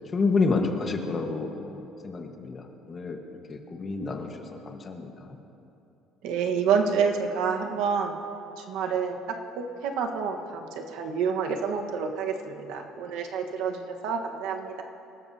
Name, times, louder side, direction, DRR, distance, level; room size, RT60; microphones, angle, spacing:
voice 1, 0.1-3.2 3.5-5.4, left 4 dB, 25° left, 3 dB, 1.4 m, -29 dB
voice 2, 6.2-8.2 8.6-9.2 9.5-14.8, right 6 dB, 75° right, 3 dB, 1.3 m, -28 dB
26.5 x 13.0 x 2.8 m, 2.8 s
cardioid pair, 155°, 0 cm